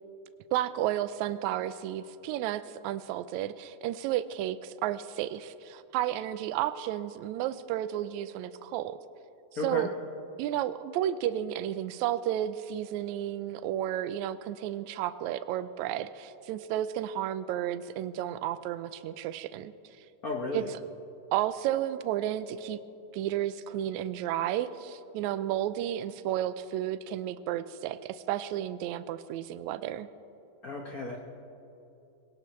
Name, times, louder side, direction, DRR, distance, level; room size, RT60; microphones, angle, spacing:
voice 1, 0.5-9.0 9.6-9.9 10.4-19.7 20.5-20.6 21.3-22.8 23.1-30.1, right 12 dB, 80° right, 13 dB, 1.8 m, -32 dB
voice 2, 9.5-9.9 20.2-20.7 30.6-31.2, left 2 dB, 80° left, 0 dB, 0.8 m, -33 dB
23.0 x 18.0 x 3.1 m, 2.8 s
omnidirectional pair, 3.5 m